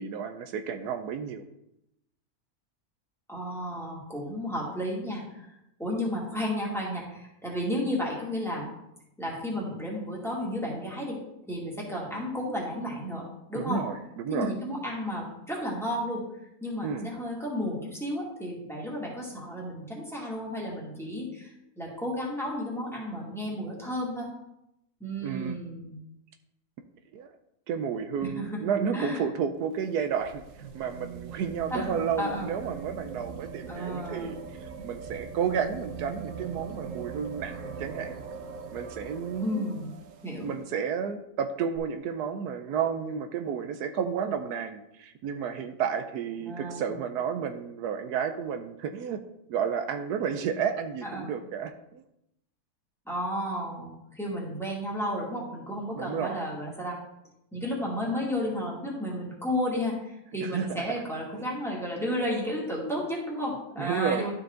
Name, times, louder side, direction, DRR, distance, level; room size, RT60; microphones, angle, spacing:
voice 1, 0.0-1.4 13.5-14.5 16.8-17.1 25.2-25.6 27.1-27.3 27.7-30.5 30.7-38.2 38.7-39.6 40.4-49.2 49.5-52.0 55.9-56.4 60.4-61.0 61.3-61.5 63.8-64.3, right 7 dB, 80° right, 8 dB, 1.1 m, -31 dB
voice 2, 3.3-5.5 5.8-8.7 9.2-11.2 11.5-13.8 14.3-16.2 16.6-24.3 25.0-25.9 28.2-28.6 28.9-29.2 31.7-31.9 32.2-32.5 33.7-34.4 39.4-39.9 40.2-40.5 46.5-46.9 51.0-51.3 53.1-57.0 57.5-64.3, equal, ahead, -4 dB, 2.1 m, -32 dB
sound 1, 29.6-40.6 41.8-41.9, right 6 dB, 60° right, 1.0 m, -41 dB
12.0 x 4.6 x 3.8 m, 0.83 s
omnidirectional pair, 1.7 m